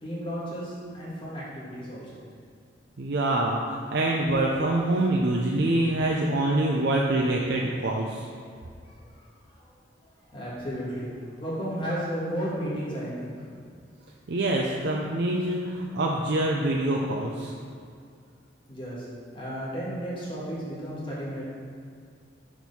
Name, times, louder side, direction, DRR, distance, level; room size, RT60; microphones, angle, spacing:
voice 1, 0.0-2.2 8.8-9.2 9.5-9.7 10.3-11.1 11.4-13.3 18.7-19.0 19.3-21.4, equal, 25° left, -8 dB, 1.7 m, -33 dB
voice 2, 3.0-8.3 14.3-17.5, right 1 dB, 60° right, -2 dB, 0.5 m, -25 dB
6.0 x 4.6 x 5.4 m, 2.3 s
head